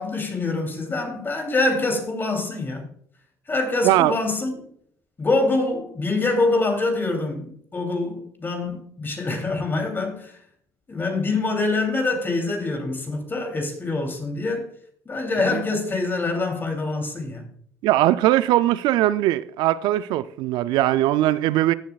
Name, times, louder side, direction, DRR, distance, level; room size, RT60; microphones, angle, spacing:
voice 1, 0.0-2.9 3.5-4.7 5.2-10.4 10.9-14.7 15.0-17.5, left 3 dB, 25° left, 2.9 m, -25 dB
voice 2, 17.8-21.7, right 14 dB, 70° right, 0.4 m, -20 dB
15.5 x 7.3 x 2.3 m
supercardioid pair, 80°, 8 cm